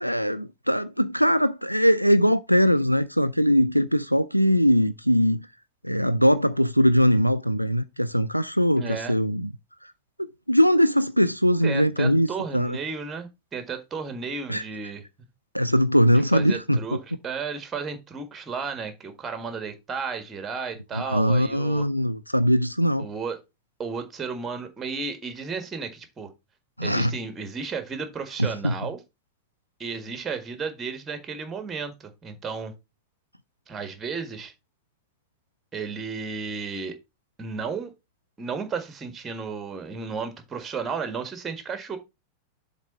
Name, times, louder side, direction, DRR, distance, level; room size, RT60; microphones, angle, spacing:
voice 1, 0.0-5.4 5.8-9.5 10.2-12.3 12.5-12.8 14.5-14.6 15.5-16.8 20.9-23.1 26.8-27.1 28.4-28.7, equal, 90° right, 0.3 m, -21 dB
voice 2, 8.8-9.2 11.6-15.0 16.1-21.9 23.0-23.4 23.8-26.3 26.8-29.0 29.8-32.7 33.7-34.5 35.7-36.9 37.4-37.9 38.4-42.0, right 5 dB, 20° right, 1.6 m, -33 dB
7.2 x 3.8 x 5.3 m
figure-of-eight pair, 90°, 0 cm